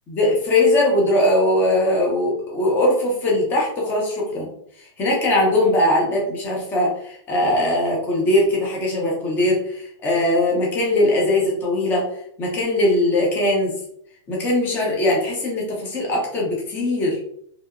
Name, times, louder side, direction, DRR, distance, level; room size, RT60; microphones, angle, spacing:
voice 1, 0.1-4.5 4.8-12.1 12.4-13.7 14.3-17.2, left 1 dB, 15° left, -3 dB, 0.5 m, -20 dB
2.7 x 2.0 x 2.4 m, 0.67 s
hypercardioid pair, 165°, 15 cm